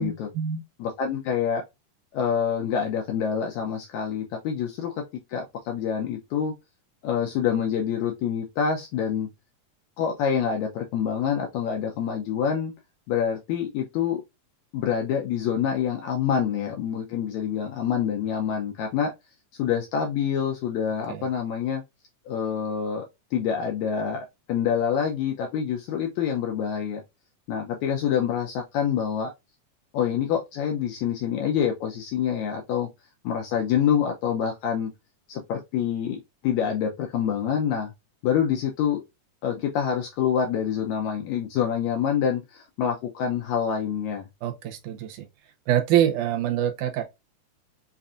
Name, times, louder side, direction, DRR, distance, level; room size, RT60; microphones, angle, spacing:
voice 1, 0.0-0.6 21.1-21.2 44.4-45.3 45.7-47.0, right 10 dB, 75° right, 2.1 m, -25 dB
voice 2, 0.8-1.6 2.1-4.9 5.3-6.5 7.0-9.3 10.0-12.7 13.1-14.2 14.7-19.1 19.6-21.8 22.3-23.0 23.3-27.0 27.5-29.3 29.9-32.9 33.2-34.9 35.3-37.9 38.2-39.0 39.4-44.3, left 8 dB, 80° left, 1.7 m, -26 dB
5.4 x 2.5 x 2.4 m
omnidirectional pair, 3.8 m